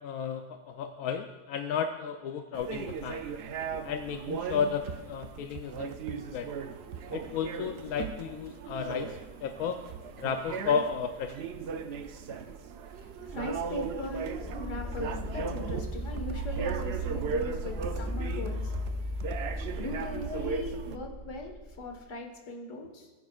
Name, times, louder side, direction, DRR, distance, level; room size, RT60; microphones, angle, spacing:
voice 1, 0.0-3.2 3.8-6.5 7.1-9.8 10.2-11.5, left 7 dB, 85° left, 5 dB, 1.1 m, -33 dB
sound 1, 2.5-21.0, right 5 dB, 60° right, 0.7 m, -38 dB
voice 2, 12.8-18.7 19.0-19.1 19.8-23.1, left 2 dB, 60° left, 3 dB, 1.7 m, -39 dB
sound 2, 13.2-22.0, equal, 30° right, 1.8 m, -37 dB
18.0 x 9.4 x 2.4 m, 1.2 s
omnidirectional pair, 1.5 m